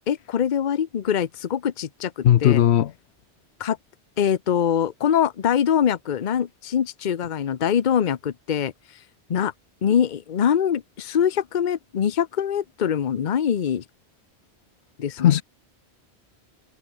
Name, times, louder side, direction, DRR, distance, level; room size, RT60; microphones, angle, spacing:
voice 1, 0.1-2.6 3.6-3.8 4.2-8.7 9.3-9.5 9.8-13.8 15.0-15.4, left 8 dB, 50° left, 0.8 m, -23 dB
voice 2, 2.2-2.9 15.2-15.4, left 11 dB, 80° left, 0.9 m, -17 dB
omnidirectional pair, 1.1 m